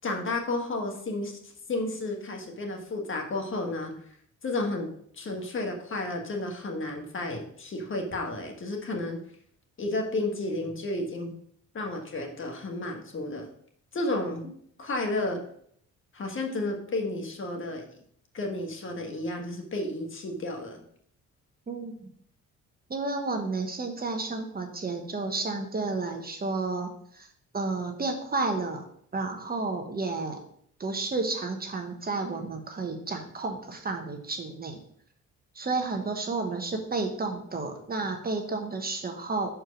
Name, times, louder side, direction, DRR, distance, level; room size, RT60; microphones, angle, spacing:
voice 1, 0.0-1.4 1.7-4.0 4.4-9.2 9.8-11.3 11.7-13.5 13.9-14.4 14.8-15.4 16.1-17.8 18.3-20.8, left 2 dB, 40° left, 2 dB, 1.5 m, -32 dB
voice 2, 21.7-22.1 22.9-27.3 27.5-28.8 29.1-30.4 30.8-34.8 35.5-39.6, right 3 dB, 30° right, 5 dB, 1.2 m, -31 dB
6.4 x 4.6 x 5.2 m, 0.66 s
cardioid pair, 90°, 30 cm